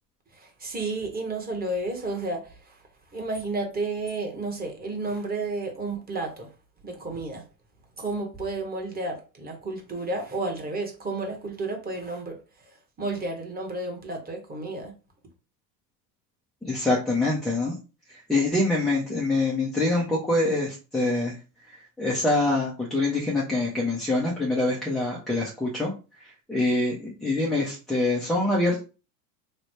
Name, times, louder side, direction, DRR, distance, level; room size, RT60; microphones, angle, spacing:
voice 1, 0.3-2.8 3.1-6.5 6.8-7.5 8.0-14.9, right 2 dB, 20° right, 1.0 m, -32 dB
voice 2, 16.6-17.7 18.1-21.4 22.0-25.9 26.2-28.8, left 2 dB, ahead, 0.3 m, -25 dB
3.1 x 2.0 x 4.2 m
hypercardioid pair, 95°, 50 cm